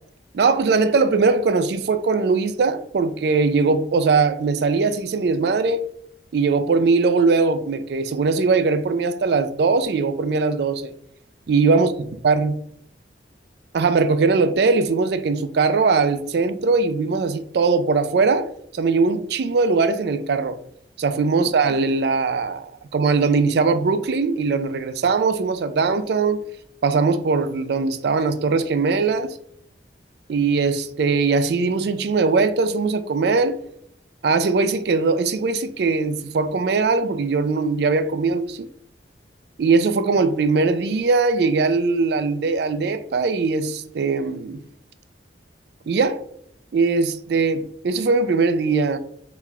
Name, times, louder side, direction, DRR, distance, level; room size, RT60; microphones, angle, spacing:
voice 1, 0.3-5.8 6.3-10.9 11.5-11.9 12.2-12.5 13.7-20.6 21.0-26.4 26.8-29.4 30.3-33.6 34.2-38.7 39.6-44.6 45.9-46.2 46.7-49.0, right 4 dB, 60° right, 0.3 m, -20 dB
4.0 x 2.3 x 4.2 m
head